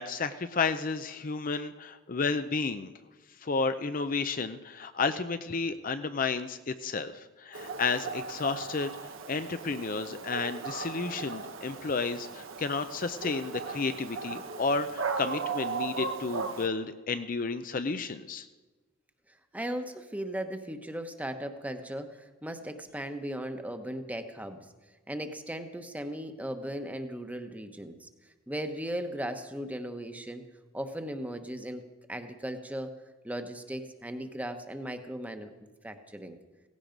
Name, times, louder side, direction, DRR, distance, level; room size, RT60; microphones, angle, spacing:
voice 1, 0.0-2.9 3.4-8.9 9.3-18.5, left 4 dB, 45° left, 10 dB, 0.6 m, -32 dB
Dog, 7.5-16.7, right 4 dB, 80° right, 1.3 m, -37 dB
voice 2, 19.5-24.7 25.1-28.1 28.5-30.4 30.7-31.8 32.1-32.9 33.2-35.5 35.8-36.4, right 1 dB, 10° right, 7 dB, 1.1 m, -37 dB
17.0 x 16.0 x 5.2 m, 1.3 s
head